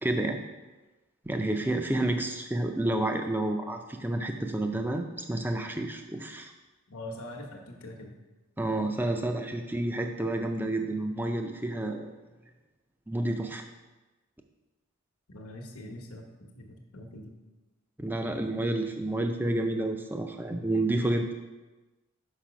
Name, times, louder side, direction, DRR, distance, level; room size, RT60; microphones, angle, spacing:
voice 1, 0.0-0.4 1.3-6.5 8.6-12.1 13.1-13.6 18.0-21.3, right 1 dB, 10° right, 5 dB, 0.4 m, -30 dB
voice 2, 6.9-8.1 15.3-16.3 16.5-17.3, left 1 dB, 75° left, 2 dB, 1.0 m, -43 dB
5.7 x 5.4 x 5.0 m, 1.2 s
head